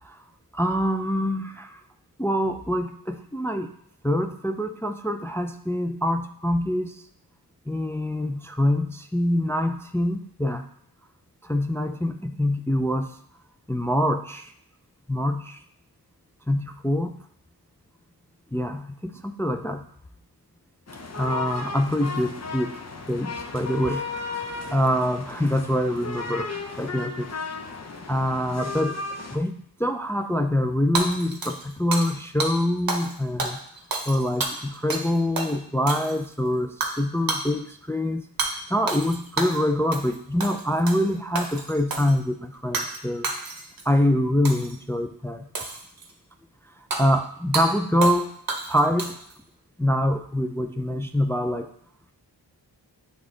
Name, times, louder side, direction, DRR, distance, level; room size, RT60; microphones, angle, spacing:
voice 1, 0.5-1.8 2.2-3.7 4.0-7.0 7.7-10.7 11.4-13.2 13.7-14.5 15.1-15.6 16.5-17.2 18.5-19.8 21.1-22.8 23.1-27.3 27.6-27.7 28.1-29.0 29.3-33.6 34.1-43.3 43.9-45.5 46.8-48.3 48.7-49.2 49.8-51.7, left 1 dB, 5° left, 6 dB, 0.3 m, -25 dB
sound 1, 20.9-29.4, left 4 dB, 40° left, 0.7 m, -34 dB
Hammer / Shatter, 30.9-32.1 32.4-32.5 32.9-33.1 33.4-35.1 35.4-35.5 35.9-36.3 36.8-37.0 37.3-37.5 38.4-38.5 38.9-39.6 39.9-40.1 40.4-41.0 41.3-42.1 42.7-43.0 43.2-43.8 44.4-44.8 45.5-46.1 46.9-47.0 47.5-47.7 48.0-48.2 48.5-49.3, right 3 dB, 55° right, 1.0 m, -29 dB
8.2 x 3.6 x 3.8 m, 0.66 s
wide cardioid pair, 85°, 42 cm